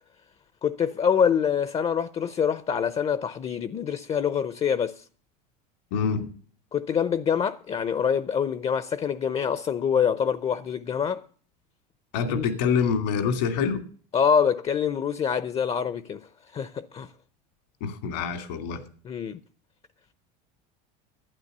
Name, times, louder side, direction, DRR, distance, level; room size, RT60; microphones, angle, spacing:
voice 1, 0.6-5.0 6.7-11.2 12.3-12.5 14.1-16.2 16.5-17.1 19.0-19.4, left 7 dB, 30° left, 0.7 m, -25 dB
voice 2, 5.9-6.3 12.1-13.8 17.8-18.8, left 6 dB, 80° left, 2.5 m, -26 dB
12.0 x 9.1 x 6.7 m
supercardioid pair, 110°, 21 cm